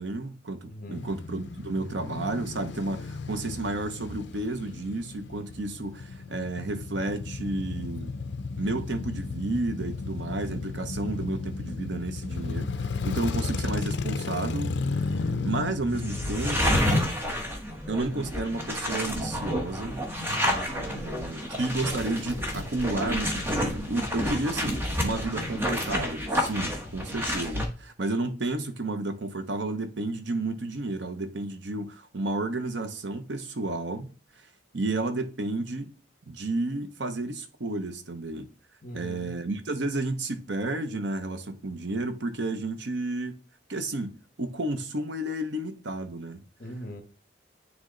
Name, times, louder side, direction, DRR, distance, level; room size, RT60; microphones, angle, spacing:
voice 1, 0.0-8.2 8.6-16.8 17.9-20.1 20.7-34.1 34.7-35.9 36.3-38.5 38.9-43.4 43.7-46.4, right 2 dB, 65° right, 0.8 m, -32 dB
voice 2, 0.7-1.1 20.2-20.9 38.8-39.3 46.6-47.0, equal, 45° left, 1.2 m, -41 dB
Male speech man speaking / Motorcycle / Idling, 0.9-16.9, left 4 dB, 60° left, 0.5 m, -34 dB
sound 1, 16.0-27.6, equal, 10° right, 1.1 m, -29 dB
9.6 x 3.2 x 3.8 m
head